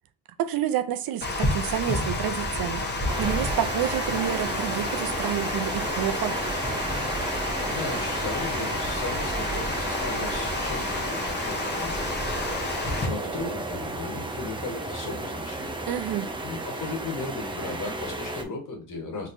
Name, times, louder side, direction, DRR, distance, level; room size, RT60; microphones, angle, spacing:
voice 1, 0.4-2.8 3.2-6.4 15.9-16.3, right 11 dB, 70° right, 0.5 m, -29 dB
Water, 1.2-13.1, left 2 dB, 30° left, 1.0 m, -30 dB
sound 1, 1.6-11.0, right 2 dB, 10° left, 1.3 m, -40 dB
outdoor winter ambience birds light wind trees, 3.1-18.4, right 2 dB, 15° right, 0.6 m, -33 dB
voice 2, 7.6-12.1 13.0-15.7 16.4-19.3, left 3 dB, 55° left, 1.4 m, -36 dB
4.2 x 3.1 x 2.6 m
cardioid pair, 95°, 37 cm